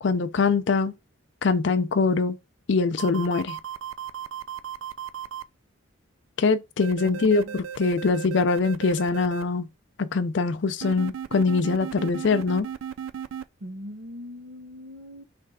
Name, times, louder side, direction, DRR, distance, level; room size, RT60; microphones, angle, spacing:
voice 1, 0.0-0.9 1.4-2.4 2.7-3.6 6.4-9.7 10.0-12.7, left 4 dB, 60° left, 0.4 m, -23 dB
sound 1, 3.0-5.4 6.8-9.4 10.8-13.4, right 8 dB, 85° right, 0.3 m, -35 dB
voice 2, 7.0-7.6 13.6-15.2, left 1 dB, 65° right, 0.8 m, -40 dB
3.3 x 3.3 x 4.7 m
head